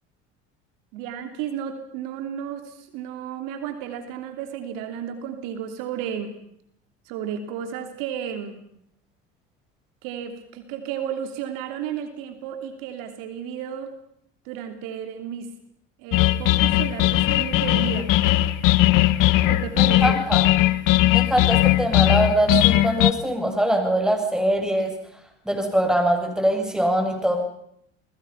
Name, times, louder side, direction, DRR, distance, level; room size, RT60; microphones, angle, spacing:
voice 1, 0.9-6.3 7.1-8.6 10.0-13.9 14.4-15.5 16.0-18.1 19.5-20.2, right 8 dB, 70° right, 7 dB, 3.0 m, -33 dB
sound 1, 16.1-23.1, left 16 dB, 60° left, 1.5 m, -19 dB
voice 2, 19.8-20.5 21.1-24.9 25.5-27.4, right 1 dB, ahead, 4 dB, 7.4 m, -23 dB
29.5 x 20.5 x 5.9 m, 0.72 s
hypercardioid pair, 80°, 35 cm